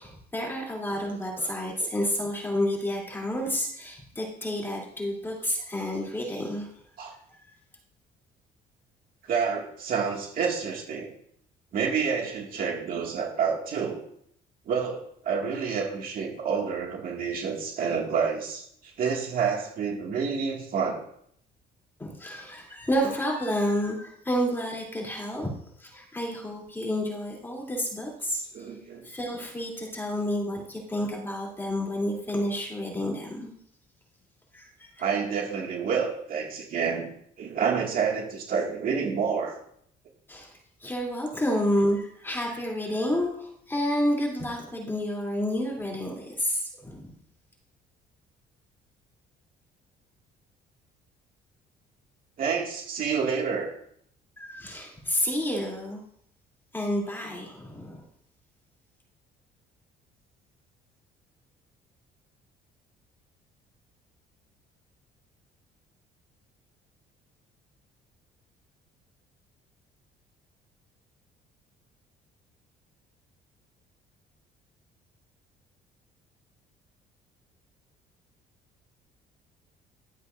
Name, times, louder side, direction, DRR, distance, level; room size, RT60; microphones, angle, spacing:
voice 1, 0.0-6.7 22.0-25.5 25.8-28.7 29.0-33.5 34.5-35.0 40.3-40.5 40.8-47.1 54.4-56.0 56.7-58.1, equal, 15° left, -2 dB, 3.2 m, -30 dB
voice 2, 9.3-11.1 11.7-14.0 14.7-21.0 28.5-29.1 35.0-37.1 37.4-39.5 52.4-53.7, right 6 dB, 60° right, 0 dB, 2.2 m, -28 dB
12.5 x 7.8 x 2.7 m, 0.67 s
cardioid pair, 110°, 17 cm